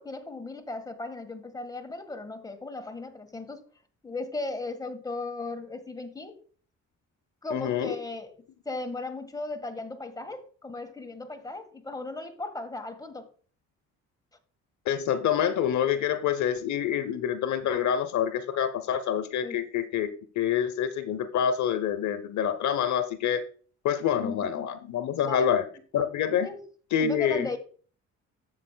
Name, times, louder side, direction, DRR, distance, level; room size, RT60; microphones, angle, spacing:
voice 1, 0.0-3.6 4.0-6.4 7.4-8.3 8.6-13.3 19.4-19.6 24.1-24.7 25.3-25.6 26.4-26.6 27.0-27.6, left 3 dB, 10° left, 1.5 m, -36 dB
voice 2, 7.5-8.0 14.9-23.4 23.8-25.6 25.9-26.5 26.9-27.5, left 9 dB, 70° left, 0.8 m, -27 dB
12.5 x 7.8 x 2.2 m
cardioid pair, 90°, 30 cm